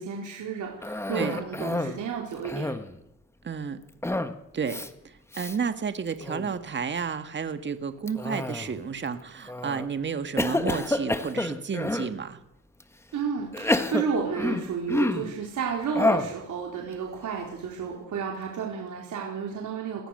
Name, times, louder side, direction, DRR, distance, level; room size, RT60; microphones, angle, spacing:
voice 1, 0.0-2.7 13.1-20.1, right 6 dB, 65° right, -1 dB, 4.3 m, -32 dB
Cough, 0.8-2.0 2.3-3.0 4.0-4.4 4.7-4.9 5.3-5.6 6.1-6.5 8.1-8.9 9.5-9.9 10.4-12.1 12.8-12.9 13.5-15.3 15.9-16.4, left 1 dB, 10° left, 1.5 m, -28 dB
voice 2, 3.4-3.8 4.5-4.8 5.3-12.4, right 6 dB, 35° right, 9 dB, 1.7 m, -31 dB
29.0 x 19.5 x 6.7 m, 0.85 s
cardioid pair, 115°, 33 cm